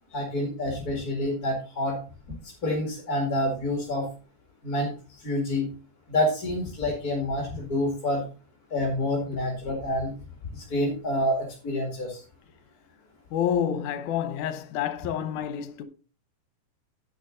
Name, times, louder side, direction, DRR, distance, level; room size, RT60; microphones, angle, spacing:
voice 1, 0.1-2.0 2.4-4.1 4.6-5.7 6.1-8.2 8.7-10.1 10.5-12.2, left 1 dB, 30° left, 2.2 m, -28 dB
voice 2, 13.3-15.8, left 9 dB, 75° left, 2.3 m, -28 dB
10.5 x 8.0 x 3.8 m
omnidirectional pair, 3.7 m